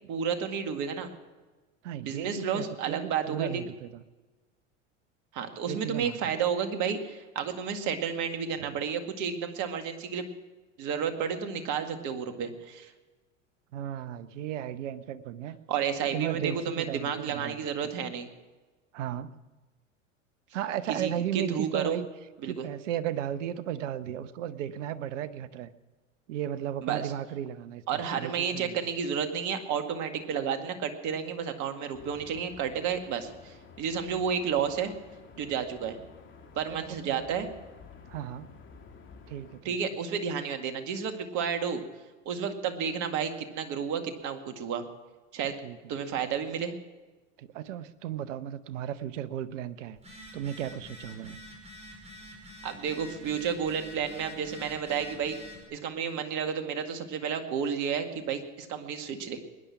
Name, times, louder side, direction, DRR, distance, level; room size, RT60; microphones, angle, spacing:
voice 1, 0.1-1.1 2.0-3.6 5.3-10.3 10.8-12.9 15.7-18.3 20.9-22.0 22.4-22.7 26.8-27.0 27.9-34.9 35.4-36.0 36.6-37.5 39.6-41.8 42.3-44.8 45.3-45.6 45.9-46.7 52.6-55.4 55.7-59.4, right 7 dB, 50° right, 7 dB, 2.1 m, -31 dB
voice 2, 1.8-4.0 5.7-6.4 8.6-8.8 13.7-15.6 16.1-17.9 18.9-19.3 20.5-22.1 22.4-25.7 26.3-28.8 36.7-37.2 38.1-38.5 39.3-39.8 45.6-45.8 47.4-50.0 50.3-51.4, right 11 dB, 70° right, 15 dB, 1.0 m, -35 dB
sound 1, 31.9-39.6, left 5 dB, 30° left, 3.0 m, -51 dB
Telephone, 50.0-55.6, left 1 dB, 15° right, 4.9 m, -47 dB
21.0 x 10.5 x 5.9 m, 1.2 s
hypercardioid pair, 85°, 38 cm